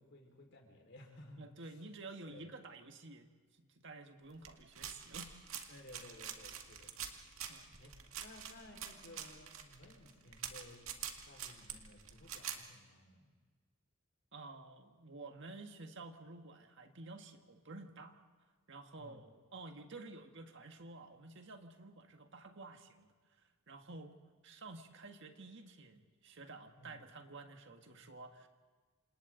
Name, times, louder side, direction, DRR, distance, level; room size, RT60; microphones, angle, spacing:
voice 1, 0.0-1.8 2.3-2.5 5.7-7.1 7.8-13.3 18.9-19.2 26.8-27.0, left 1 dB, 60° left, 1 dB, 4.9 m, -57 dB
voice 2, 1.4-3.3 3.6-5.4 7.5-7.7 14.3-18.2 18.7-24.1 24.4-28.5, right 3 dB, 60° right, 5 dB, 1.7 m, -51 dB
sound 1, 4.4-12.6, right 9 dB, 80° right, 2.1 m, -46 dB
28.5 x 27.0 x 4.0 m, 1.4 s
head